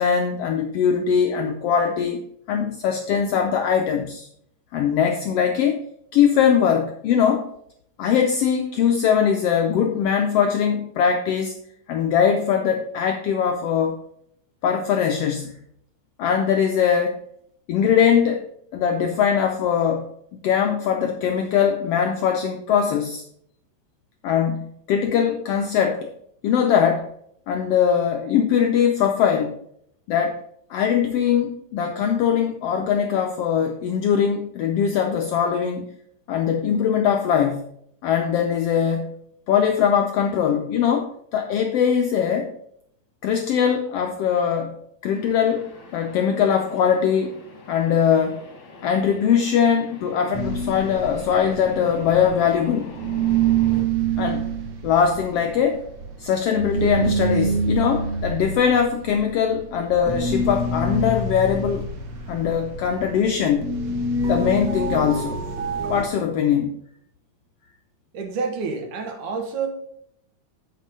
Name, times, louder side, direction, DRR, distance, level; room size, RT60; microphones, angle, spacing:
voice 1, 0.0-2.2 2.5-4.3 4.7-5.8 6.1-7.5 8.0-11.5 11.9-14.0 14.6-15.5 16.2-17.2 17.7-18.4 18.7-23.2 24.2-26.1 26.4-27.1 27.5-29.6 30.1-30.4 30.7-35.9 36.3-37.6 38.0-39.1 39.5-42.5 43.2-44.7 45.0-47.4 47.7-48.4 48.8-52.9 54.2-54.5 54.8-55.8 56.2-61.9 62.3-63.7 64.3-65.4 65.9-66.7, left 7 dB, 85° left, 4 dB, 1.4 m, -21 dB
sound 1, 45.1-53.8, left 5 dB, 45° left, 1.3 m, -42 dB
sound 2, 50.3-52.7 53.0-66.0, right 4 dB, 70° right, 1.0 m, -26 dB
voice 2, 68.1-69.7, right 5 dB, 85° right, 4 dB, 2.8 m, -28 dB
8.5 x 4.6 x 5.2 m, 0.70 s
omnidirectional pair, 3.4 m